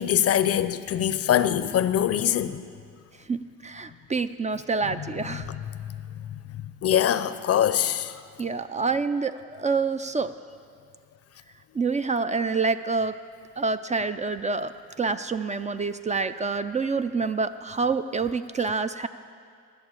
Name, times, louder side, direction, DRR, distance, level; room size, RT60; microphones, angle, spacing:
voice 1, 0.0-2.6 5.3-5.6 6.8-8.1, left 10 dB, 55° left, 0.5 m, -23 dB
voice 2, 3.3-5.5 8.4-10.3 11.7-13.1 13.6-14.7 15.0-19.1, right 4 dB, 25° right, 0.4 m, -27 dB
11.0 x 6.9 x 8.9 m
cardioid pair, 90°, 30 cm